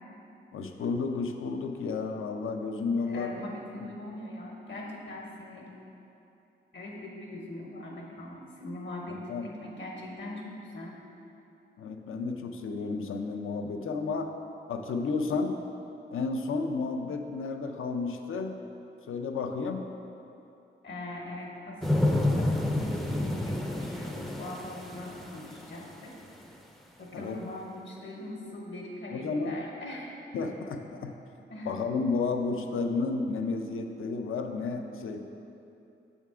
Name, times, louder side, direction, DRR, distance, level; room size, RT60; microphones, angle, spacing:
voice 1, 0.5-3.4 9.1-9.5 11.8-14.3 14.7-15.6 16.1-18.6 19.1-19.9 27.1-27.4 29.1-29.6 30.3-31.1 31.6-35.2, left 4 dB, 85° left, 5 dB, 0.5 m, -32 dB
voice 2, 3.1-5.7 6.7-11.0 20.8-26.1 27.0-30.1 31.5-31.7, left 1 dB, 65° left, -2 dB, 1.0 m, -41 dB
sound 1, 21.8-25.8 26.3-26.4, left 1 dB, ahead, 0.3 m, -29 dB
7.4 x 3.6 x 4.7 m, 2.8 s
wide cardioid pair, 145°, 21 cm